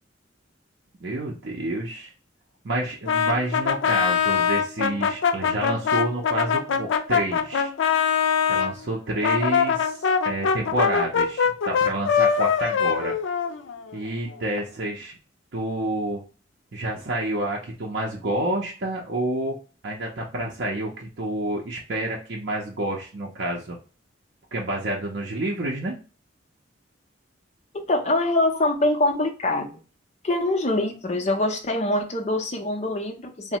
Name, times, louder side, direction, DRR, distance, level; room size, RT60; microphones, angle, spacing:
voice 1, 1.0-2.1 2.6-7.7 8.4-13.1 13.9-15.2 15.5-16.2 16.7-19.6 19.8-23.8 24.5-26.0, right 1 dB, 60° right, -2 dB, 0.6 m, -29 dB
Brass instrument, 3.1-8.7 9.2-14.0, left 7 dB, 80° left, 0.4 m, -23 dB
voice 2, 27.7-29.8 30.2-33.6, left 1 dB, 35° left, 4 dB, 0.6 m, -24 dB
3.2 x 2.0 x 2.8 m, 0.36 s
head